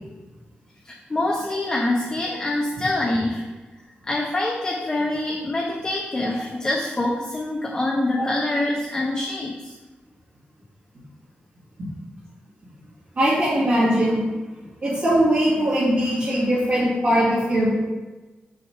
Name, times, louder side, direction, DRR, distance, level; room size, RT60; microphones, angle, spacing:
voice 1, 0.8-3.4 4.0-9.7, left 2 dB, 20° left, -1 dB, 0.6 m, -25 dB
voice 2, 13.2-14.2 14.8-17.8, equal, 50° right, -11 dB, 2.1 m, -20 dB
5.5 x 3.4 x 5.7 m, 1.2 s
wide cardioid pair, 135°, 4 cm